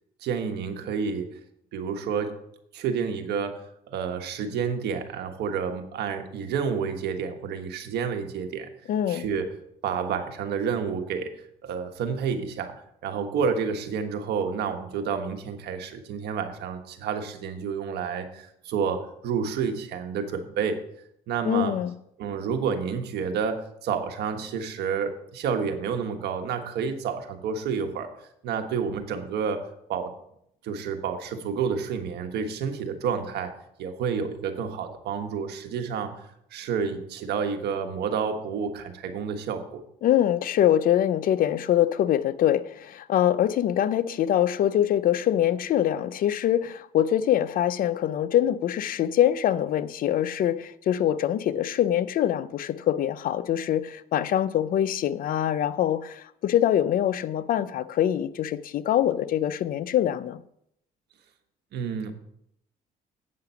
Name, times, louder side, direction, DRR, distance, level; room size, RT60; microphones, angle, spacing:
voice 1, 0.2-1.3 1.7-2.3 2.7-3.6 3.9-8.7 9.1-9.5 9.8-11.3 11.6-12.7 13.0-20.8 21.3-21.7 22.2-28.1 28.4-29.6 29.9-30.1 30.6-33.5 33.8-36.1 36.5-39.8 61.7-62.1, right 6 dB, 75° right, 1.4 m, -29 dB
voice 2, 8.9-9.3 21.4-21.9 40.0-60.4, left 11 dB, 55° left, 0.5 m, -24 dB
8.7 x 5.8 x 6.9 m
cardioid pair, 110°, 17 cm